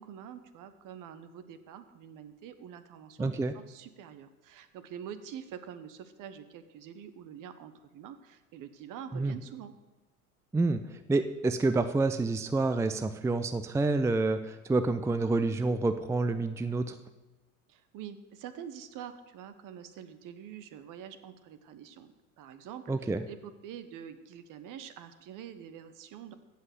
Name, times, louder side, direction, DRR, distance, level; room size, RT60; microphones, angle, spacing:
voice 1, 0.0-9.7 17.7-26.3, right 9 dB, 50° right, 11 dB, 1.3 m, -46 dB
voice 2, 3.2-3.5 9.1-9.3 10.5-16.9 22.9-23.2, right 3 dB, 5° right, 10 dB, 0.5 m, -28 dB
15.5 x 5.8 x 8.1 m, 1.1 s
hypercardioid pair, 90°, 41 cm